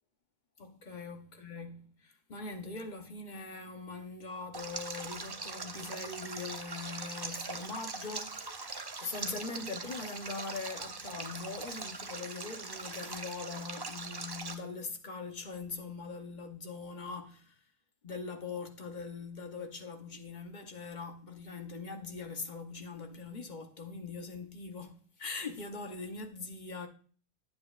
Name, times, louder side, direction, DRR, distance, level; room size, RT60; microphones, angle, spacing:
voice 1, 0.6-17.6 18.0-26.9, left 4 dB, 40° left, 0.9 m, -42 dB
Stream, 4.5-14.5, right 3 dB, 40° right, 0.3 m, -41 dB
9.2 x 7.9 x 2.4 m
omnidirectional pair, 1.3 m